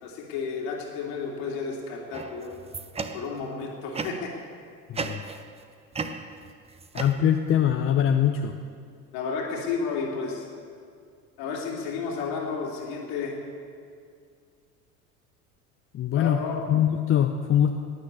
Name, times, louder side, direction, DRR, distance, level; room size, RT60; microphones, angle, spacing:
voice 1, 0.0-2.6 3.1-4.3 9.1-10.5 11.4-13.3 16.2-16.6, left 5 dB, 55° left, -1 dB, 2.5 m, -32 dB
sound 1, 2.1-3.5 3.9-4.4 4.9-5.6 5.9-7.6, right 4 dB, 15° right, 0.7 m, -36 dB
voice 2, 4.9-5.2 6.9-8.5 15.9-16.4 16.7-17.7, left 9 dB, 30° left, 5 dB, 0.7 m, -22 dB
12.5 x 9.5 x 8.3 m, 2.3 s
figure-of-eight pair, 70°, 45 cm